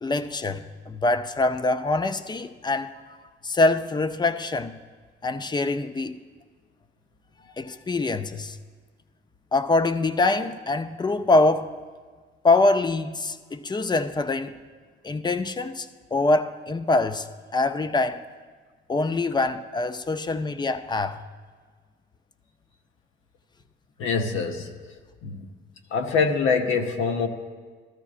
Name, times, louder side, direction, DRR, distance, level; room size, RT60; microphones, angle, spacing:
voice 1, 0.0-3.0 3.4-4.8 5.2-6.2 7.6-8.6 9.5-11.7 12.4-14.6 15.0-18.2 18.9-21.2, left 2 dB, 20° left, 0.4 m, -24 dB
voice 2, 24.0-24.7 25.2-25.5 25.9-27.3, left 5 dB, 85° left, 0.9 m, -24 dB
13.5 x 13.5 x 2.4 m
cardioid pair, 90°, 20 cm